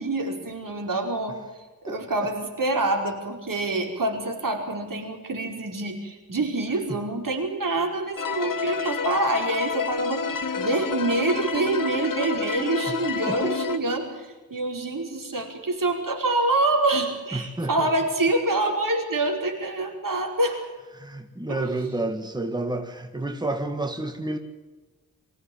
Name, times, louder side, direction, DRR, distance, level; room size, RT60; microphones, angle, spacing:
voice 1, 0.0-1.4 1.8-10.2 10.6-20.7 21.5-21.7, right 2 dB, 70° right, 2 dB, 5.1 m, -26 dB
voice 2, 1.9-2.3 6.9-7.0 13.3-13.6 17.3-17.9 20.9-24.4, right 2 dB, 10° right, 6 dB, 1.8 m, -30 dB
sound 1, 8.2-13.8, left 6 dB, 70° left, 2.0 m, -29 dB
25.0 x 16.5 x 8.9 m, 1.2 s
wide cardioid pair, 110°, 34 cm